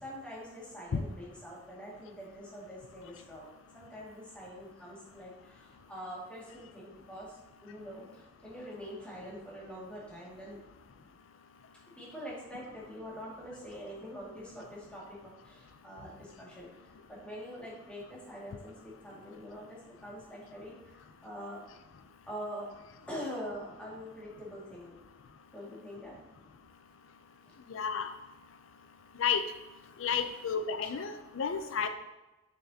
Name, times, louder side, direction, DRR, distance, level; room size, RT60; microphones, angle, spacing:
voice 1, 0.0-10.6 12.0-15.2 15.4-16.7 17.1-21.6 22.3-22.7 23.1-24.9 25.5-26.1 27.5-27.6 31.8-31.9, equal, 5° left, -6 dB, 2.0 m, -44 dB
voice 2, 27.7-28.1 29.2-29.4 30.0-31.9, left 6 dB, 80° left, 9 dB, 0.4 m, -31 dB
6.9 x 6.8 x 2.8 m, 1.0 s
head